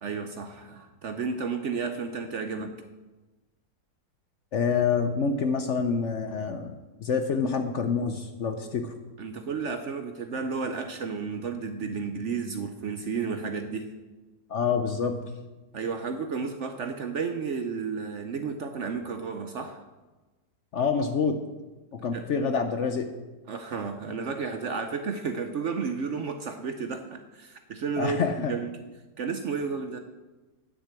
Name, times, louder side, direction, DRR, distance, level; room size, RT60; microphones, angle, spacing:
voice 1, 0.0-2.8 9.2-13.9 15.7-19.8 22.1-22.2 23.5-28.7 29.2-30.0, right 5 dB, 60° right, 7 dB, 0.8 m, -32 dB
voice 2, 4.5-6.7 7.0-8.9 14.5-15.2 20.7-21.4 21.9-23.1 28.0-28.5, left 5 dB, 60° left, 7 dB, 0.8 m, -27 dB
9.7 x 6.6 x 8.2 m, 1.2 s
omnidirectional pair, 1.8 m